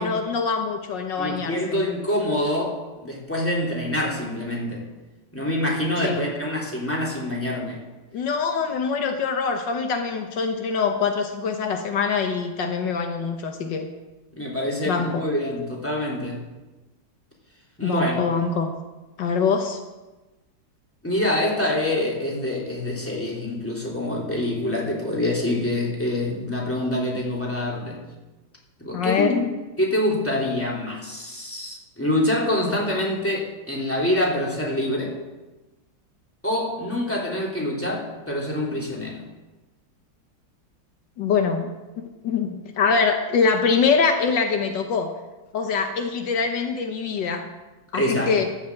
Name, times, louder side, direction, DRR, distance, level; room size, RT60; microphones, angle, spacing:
voice 1, 0.0-1.8 6.0-6.3 8.1-13.9 14.9-15.2 17.8-18.7 19.2-19.8 28.9-29.5 41.2-41.7 42.2-45.2 45.5-47.5 47.9-48.4, left 5 dB, 75° left, 6 dB, 1.7 m, -24 dB
voice 2, 1.2-4.8 5.3-7.8 14.3-16.4 17.8-18.2 21.0-28.0 28.8-29.4 29.8-35.2 36.4-39.2 47.9-48.3, left 1 dB, 5° left, -3 dB, 3.2 m, -26 dB
14.0 x 7.2 x 7.8 m, 1.1 s
omnidirectional pair, 2.0 m